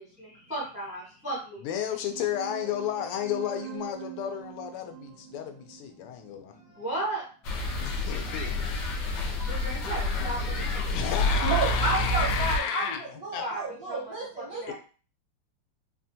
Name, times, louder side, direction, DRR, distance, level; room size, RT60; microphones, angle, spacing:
voice 1, 0.0-1.9 2.3-2.5 4.8-4.9 6.4-7.3 9.4-10.6 11.0-11.8 13.4-13.6 13.9-14.1 14.5-14.7, right 1 dB, 5° right, -5 dB, 0.5 m, -36 dB
voice 2, 1.6-6.5 7.8-8.7 10.9-13.0 13.3-13.4 14.7-14.8, left 9 dB, 90° left, 6 dB, 1.5 m, -32 dB
sound 1, 2.1-7.1, right 13 dB, 80° right, 1.4 m, -44 dB
sound 2, 7.4-12.6, left 1 dB, 70° left, 1.1 m, -28 dB
voice 3, 11.1-14.7, right 2 dB, 60° right, -3 dB, 0.9 m, -31 dB
4.1 x 2.2 x 2.7 m, 0.39 s
omnidirectional pair, 2.4 m